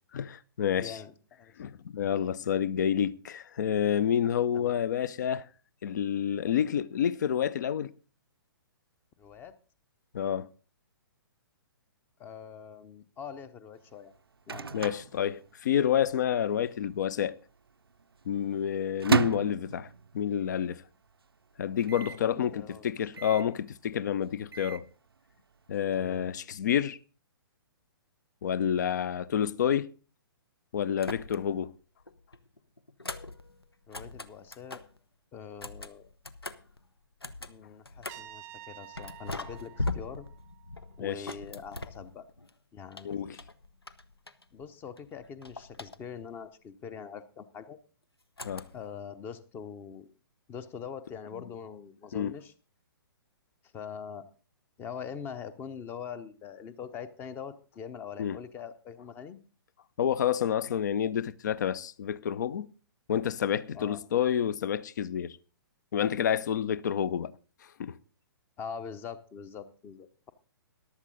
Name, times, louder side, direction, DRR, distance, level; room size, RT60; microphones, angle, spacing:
voice 1, 0.1-1.0 1.6-5.5 5.8-7.9 10.1-10.5 14.7-17.3 18.3-19.9 20.1-20.8 21.6-24.8 25.7-27.0 28.4-29.9 30.7-31.7 41.0-41.2 43.0-43.4 48.4-48.6 52.1-52.3 58.2-58.4 60.0-62.7 63.1-65.4 65.9-67.3 67.8-68.0, left 9 dB, 50° left, 0.6 m, -29 dB
voice 2, 0.8-1.5 4.5-4.8 9.2-9.5 12.2-14.1 14.5-14.8 22.1-22.8 23.2-23.6 25.9-26.3 31.3-31.6 33.9-34.8 35.3-36.1 37.4-40.3 41.0-42.3 42.7-43.4 44.5-47.8 48.7-50.1 50.5-52.5 53.7-54.2 54.8-59.4 63.7-64.0 68.6-70.3, left 7 dB, 15° left, 0.8 m, -43 dB
Microwave oven, 13.9-16.1 16.3-16.4 16.6-17.2 17.7-20.4 20.8-20.9 21.1-21.2 21.8-22.3 23.1-23.6 24.2-24.9, right 5 dB, 75° right, 0.5 m, -33 dB
sound 1, 31.0-31.7 32.0-35.0 35.5-38.4 39.0-42.5 42.9-44.7 45.0-46.4 48.4-49.0, left 2 dB, 80° left, 0.9 m, -41 dB
Trumpet, 38.1-41.0, right 14 dB, 20° right, 0.5 m, -50 dB
14.5 x 11.5 x 4.0 m
figure-of-eight pair, 120°, 13 cm